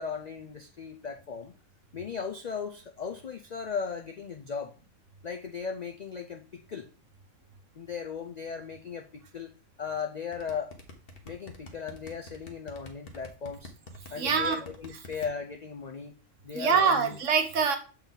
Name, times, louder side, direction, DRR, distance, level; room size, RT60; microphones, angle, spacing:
voice 1, 0.0-1.5 1.9-4.7 5.2-6.9 7.8-9.5 9.8-10.7 11.2-13.7 14.1-16.1 16.4-17.2, left 6 dB, 80° left, 3 dB, 0.3 m, -37 dB
sound 1, 10.3-15.3, left 2 dB, 45° left, 1.2 m, -45 dB
voice 2, 14.2-14.6 16.5-17.8, right 5 dB, 65° right, 6 dB, 1.2 m, -24 dB
7.0 x 4.4 x 3.8 m, 0.36 s
omnidirectional pair, 1.5 m